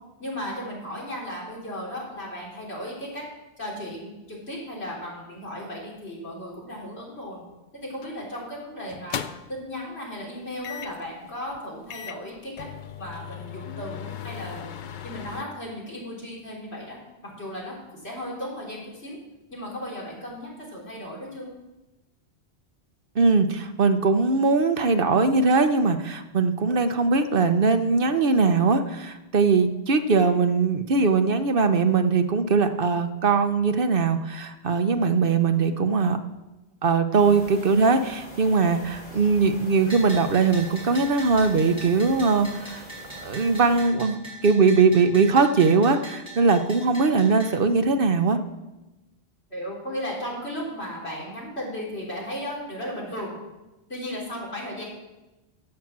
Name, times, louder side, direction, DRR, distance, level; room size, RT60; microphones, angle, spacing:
voice 1, 0.2-3.2 3.6-7.4 7.7-12.7 13.0-14.7 15.0-19.2 19.5-21.5 30.2-30.3 49.5-53.3 53.9-54.8, equal, 70° left, -4 dB, 4.2 m, -35 dB
sound 1, 8.0-8.2 8.9-9.7 10.6-11.1 11.5-11.6 11.9-15.4, left 9 dB, 55° left, 0.6 m, -37 dB
voice 2, 23.2-36.2 36.8-42.8 43.2-48.4, right 4 dB, 60° right, 8 dB, 0.9 m, -21 dB
sound 2, 37.2-43.9, equal, 40° left, 4.3 m, -44 dB
Bell, 39.9-47.5, right 2 dB, 25° right, 5.0 m, -41 dB
15.5 x 5.9 x 7.3 m, 1.0 s
omnidirectional pair, 1.1 m